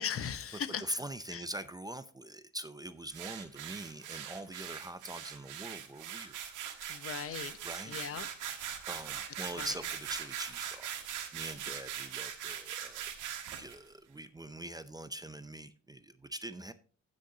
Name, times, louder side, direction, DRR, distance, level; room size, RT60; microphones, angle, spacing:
voice 1, 0.0-0.9 1.3-1.4 6.9-7.6 7.9-8.3 9.6-9.7, left 8 dB, 45° left, 14 dB, 0.9 m, -38 dB
voice 2, 0.8-6.4 7.6-8.0 8.9-13.1 13.6-16.7, right 1 dB, 15° right, 12 dB, 0.5 m, -43 dB
sound 1, 3.1-13.8, right 9 dB, 90° right, 1.5 m, -41 dB
16.0 x 6.5 x 2.8 m, 0.39 s
cardioid pair, 90°, 30 cm